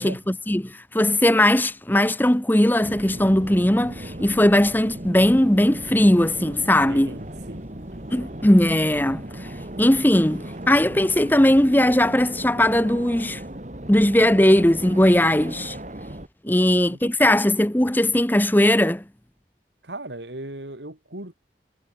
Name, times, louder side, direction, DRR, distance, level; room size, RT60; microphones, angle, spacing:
voice 1, 0.0-7.1 8.1-9.5 9.8-13.4 13.9-15.8 16.4-19.0, left 1 dB, 10° left, 1.0 m, -19 dB
sound 1, 2.8-16.3, right 1 dB, 40° right, 2.1 m, -37 dB
voice 2, 6.9-7.7 8.2-8.3 16.5-17.4 19.8-21.3, right 1 dB, 80° right, 4.1 m, -38 dB
head